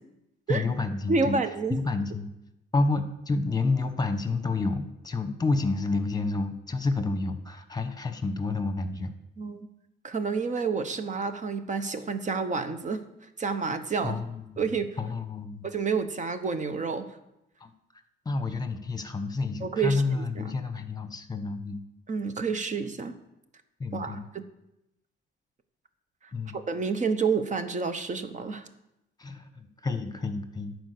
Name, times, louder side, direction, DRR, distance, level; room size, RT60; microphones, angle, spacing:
voice 1, 0.5-1.4 1.7-2.3 2.7-9.1 14.0-14.6 15.0-15.7 17.6-17.7 18.2-21.8 23.8-24.3 26.3-26.6 29.2-30.8, left 3 dB, 20° left, 9 dB, 1.2 m, -29 dB
voice 2, 1.1-1.8 9.4-9.7 10.0-13.0 13.4-14.2 14.6-14.9 15.6-17.1 19.6-20.5 22.1-23.2 23.9-24.5 26.5-28.7, right 4 dB, 40° right, 10 dB, 0.9 m, -29 dB
11.0 x 4.7 x 6.7 m, 0.89 s
cardioid pair, 90°, 20 cm